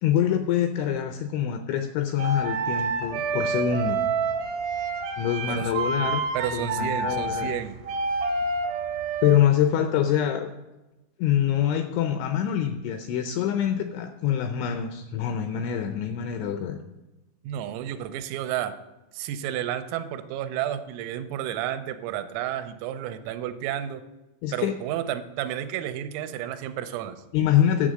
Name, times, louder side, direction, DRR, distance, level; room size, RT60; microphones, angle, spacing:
voice 1, 0.0-4.0 5.2-6.2 6.5-7.5 9.2-10.5 11.2-16.8 24.4-24.7 27.3-27.9, left 10 dB, 85° left, 6 dB, 2.6 m, -25 dB
sound 1, 2.2-9.4, right 4 dB, 75° right, 2.2 m, -28 dB
voice 2, 6.3-7.8 17.4-18.7 19.1-24.0 24.5-27.2, right 11 dB, 90° right, 9 dB, 3.3 m, -31 dB
10.0 x 7.3 x 6.3 m, 1.0 s
omnidirectional pair, 5.9 m